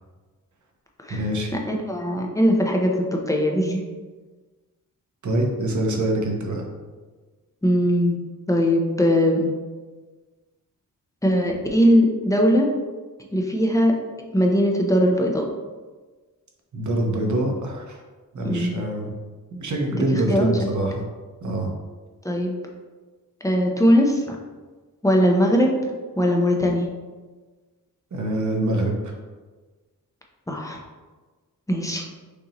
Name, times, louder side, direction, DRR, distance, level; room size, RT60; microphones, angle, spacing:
voice 1, 1.1-1.5 5.2-6.6 16.7-18.0 18.3-19.1 19.5-21.0 21.4-21.7 28.1-29.1, right 1 dB, 55° right, 1 dB, 0.9 m, -25 dB
voice 2, 1.7-3.8 7.6-8.2 8.5-9.5 11.2-12.7 13.3-13.9 14.3-15.4 18.4-18.7 20.1-20.5 22.2-22.5 23.4-24.4 25.0-25.7 26.2-26.9 30.5-30.8 31.7-32.0, equal, 10° left, 0 dB, 0.6 m, -20 dB
6.3 x 2.7 x 2.9 m, 1.3 s
wide cardioid pair, 115°, 34 cm